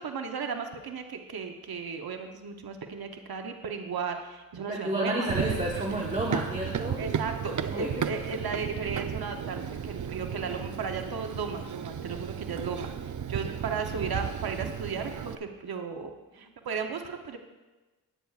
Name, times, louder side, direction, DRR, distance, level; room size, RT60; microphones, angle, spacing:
voice 1, 0.0-5.3 7.0-17.4, right 5 dB, 90° right, 4 dB, 0.9 m, -35 dB
voice 2, 4.7-7.0 7.7-7.9, right 1 dB, 20° right, -3 dB, 1.2 m, -30 dB
Run, 5.3-15.3, right 8 dB, 55° right, 0.5 m, -34 dB
17.0 x 9.2 x 2.4 m, 1.2 s
wide cardioid pair, 85°, 36 cm